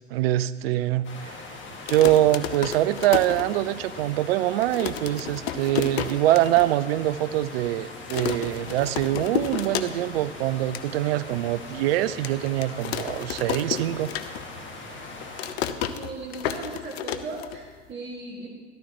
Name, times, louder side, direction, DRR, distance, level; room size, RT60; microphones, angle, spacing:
voice 1, 0.1-1.4 1.9-14.1, right 14 dB, 60° right, 17 dB, 0.5 m, -24 dB
sound 1, 1.0-15.5, left 3 dB, 35° left, 2.1 m, -41 dB
sound 2, 1.7-4.0 4.3-4.4 4.6-6.7 7.0-7.1 7.3-7.7 8.1-10.2 10.5-10.9 11.4-11.5 12.2-14.7 15.0-17.9, left 9 dB, 60° left, 0.8 m, -32 dB
voice 2, 15.9-18.5, right 3 dB, 30° right, -3 dB, 2.0 m, -37 dB
13.5 x 13.0 x 3.0 m, 1.5 s
figure-of-eight pair, 80°, 34 cm